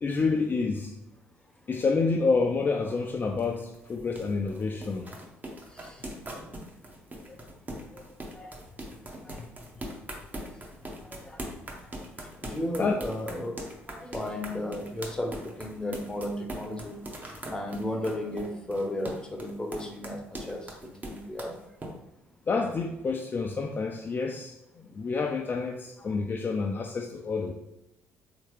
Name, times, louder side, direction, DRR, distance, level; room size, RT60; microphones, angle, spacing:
voice 1, 0.0-0.9 1.7-5.1 7.9-8.0 12.8-13.0 22.5-27.5, left 4 dB, 30° left, 3 dB, 0.4 m, -28 dB
sound 1, 2.9-21.9, right 1 dB, 25° right, 0.8 m, -41 dB
voice 2, 5.7-6.2 8.3-8.6 9.2-9.4 11.0-11.8 12.4-13.6 13.9-16.9 17.5-21.6 26.0-26.2, left 1 dB, 10° left, 4 dB, 0.7 m, -35 dB
3.5 x 2.9 x 3.1 m, 0.88 s
figure-of-eight pair, 50°, 6 cm